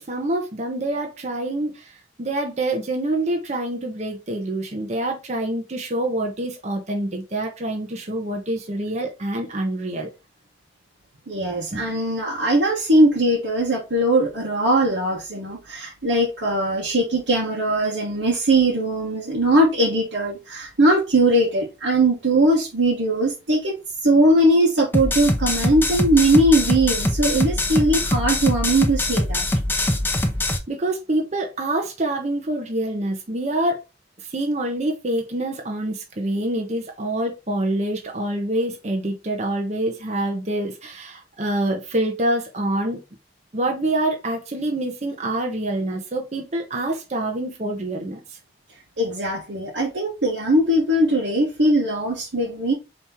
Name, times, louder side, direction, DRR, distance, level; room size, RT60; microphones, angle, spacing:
voice 1, 0.0-1.9 2.2-10.1 11.7-11.8 30.7-33.8 34.2-43.0 43.5-48.4, right 1 dB, 40° right, 0.8 m, -26 dB
voice 2, 11.3-23.7 24.0-29.5 49.0-52.7, right 1 dB, 90° right, 1.2 m, -20 dB
sound 1, 24.9-30.6, left 1 dB, 10° left, 0.5 m, -23 dB
4.3 x 3.0 x 3.5 m
head